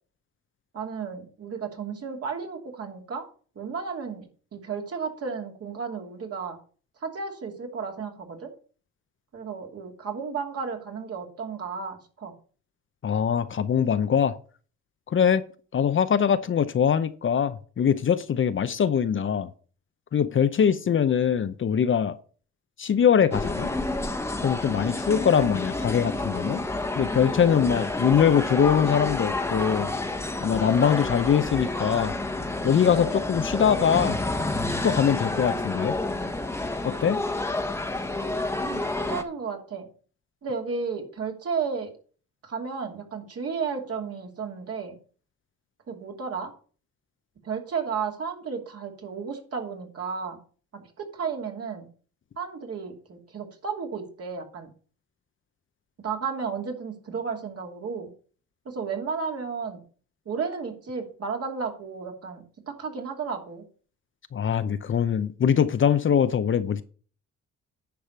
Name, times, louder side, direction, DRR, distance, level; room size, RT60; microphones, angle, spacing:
voice 1, 0.7-3.3 3.5-6.6 7.0-8.5 9.3-12.3 38.6-39.9 40.4-41.9 42.4-45.0 45.9-46.5 47.4-50.4 50.7-51.9 52.4-54.7 56.0-58.1 58.6-59.8 60.3-63.6, right 5 dB, 50° right, 2.8 m, -33 dB
voice 2, 13.0-14.4 15.1-15.4 15.7-19.5 20.1-22.2 22.8-23.7 24.4-26.7 26.9-29.9 30.4-32.1 32.6-34.2 34.8-36.0 36.8-37.2 64.3-66.8, left 8 dB, 40° left, 0.7 m, -22 dB
sound 1, 23.3-39.2, left 2 dB, 10° left, 1.1 m, -29 dB
10.5 x 5.0 x 5.9 m
cardioid pair, 90°, 30 cm